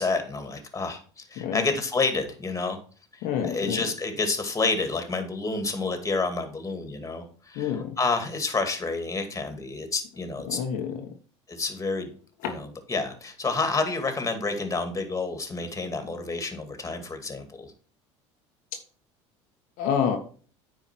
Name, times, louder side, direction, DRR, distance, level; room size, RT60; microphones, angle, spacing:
voice 1, 0.0-2.8 3.4-10.6 11.5-12.1 12.4-17.7, left 3 dB, 20° left, 7 dB, 2.2 m, -29 dB
voice 2, 1.4-1.7 3.2-3.9 7.5-8.0 10.4-11.1 12.4-12.6 19.8-20.2, left 8 dB, 65° left, 3 dB, 1.2 m, -28 dB
9.2 x 4.8 x 4.5 m, 0.42 s
hypercardioid pair, 75°, 15 cm